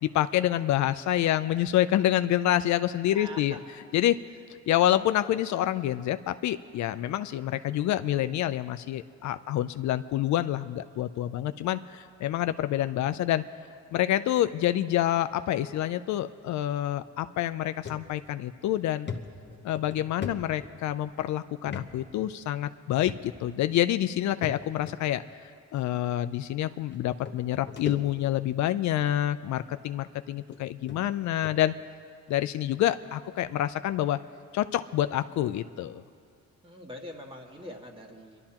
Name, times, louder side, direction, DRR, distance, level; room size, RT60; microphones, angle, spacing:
voice 1, 0.0-3.6 3.9-4.2 4.7-13.4 13.9-19.1 19.6-25.2 25.7-31.7 32.3-34.2 34.5-36.0, left 12 dB, 70° left, 12 dB, 0.5 m, -27 dB
voice 2, 3.1-3.6 9.5-9.6 36.6-38.4, equal, 15° right, 1 dB, 1.9 m, -43 dB
sound 1, 17.9-18.0 18.5-18.6 19.1-21.1 21.7-21.9 22.2-22.3 23.1-23.5 24.4-25.0 25.8-25.9 26.9-27.0 27.3-28.4 28.9-29.2 29.9-30.0 30.5-30.6 30.9-31.0 31.4-31.6, left 5 dB, 35° left, 1.0 m, -39 dB
28.5 x 12.0 x 2.9 m, 2.3 s
cardioid pair, 90°, 30 cm